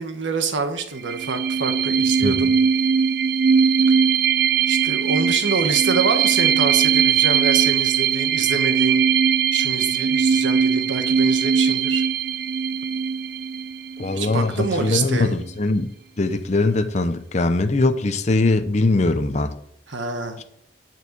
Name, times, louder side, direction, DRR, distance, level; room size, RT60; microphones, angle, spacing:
voice 1, 0.0-2.5 3.9-4.0 4.7-9.0 9.5-12.0 14.1-15.3 19.9-20.4, right 4 dB, 80° right, 1.3 m, -26 dB
sound 1, 1.0-14.4, right 7 dB, 55° right, 0.4 m, -20 dB
voice 2, 2.2-2.5 14.0-19.6 20.4-20.5, left 2 dB, 35° left, 0.7 m, -21 dB
10.5 x 4.6 x 8.1 m
head